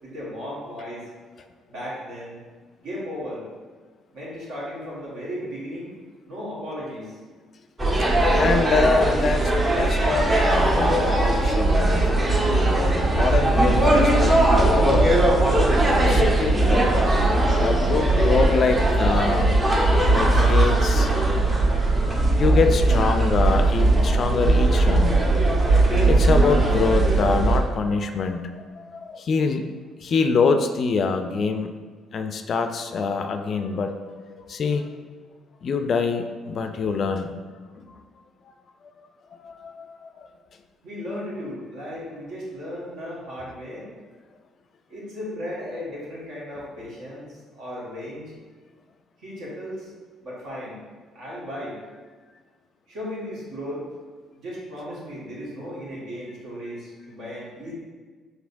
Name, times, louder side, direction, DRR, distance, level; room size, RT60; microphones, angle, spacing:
voice 1, 0.0-1.1 1.7-2.4 2.8-3.4 4.1-5.9 6.3-7.2 40.8-43.9 44.9-48.3 49.2-49.9 50.2-50.8 51.1-51.8 52.9-53.8 54.3-57.7, equal, 70° right, -6 dB, 1.5 m, -35 dB
sound 1, 7.8-27.6, right 2 dB, 35° right, 0.9 m, -19 dB
voice 2, 8.3-12.3 13.1-15.2 16.1-17.0 17.4-19.6 20.1-21.1 22.3-25.2 26.1-29.7 30.0-31.7 32.1-34.9 35.6-37.3 37.8-38.0 39.4-40.3, left 4 dB, 55° left, 7 dB, 0.3 m, -25 dB
4.9 x 3.2 x 2.5 m, 1.5 s
hypercardioid pair, 55°, 0 cm